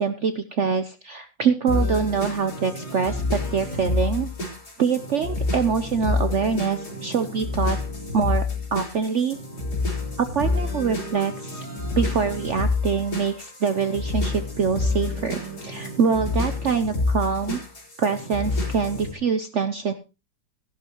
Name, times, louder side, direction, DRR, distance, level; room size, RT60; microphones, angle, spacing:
voice 1, 0.0-4.3 4.8-7.8 8.1-8.4 8.7-9.4 10.2-11.6 11.9-17.6 18.0-19.9, right 6 dB, 65° right, 9 dB, 0.7 m, -24 dB
sound 1, 1.7-19.1, left 3 dB, 55° left, 4.7 m, -28 dB
14.5 x 11.5 x 3.0 m, 0.28 s
omnidirectional pair, 2.0 m